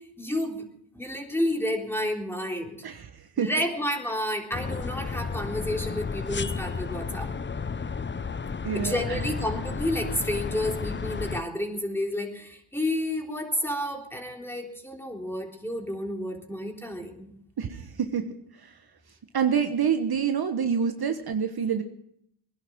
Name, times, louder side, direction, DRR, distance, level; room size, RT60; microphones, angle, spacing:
voice 1, 0.2-0.7 1.0-2.8 3.4-7.3 8.7-17.3, left 1 dB, 5° left, 1 dB, 3.7 m, -30 dB
voice 2, 2.8-3.5 8.6-9.2 17.6-18.7 19.3-21.8, right 7 dB, 50° right, 7 dB, 1.3 m, -27 dB
sound 1, 4.5-11.4, left 5 dB, 25° left, 0.7 m, -32 dB
21.0 x 11.0 x 6.2 m, 0.72 s
cardioid pair, 65°, 48 cm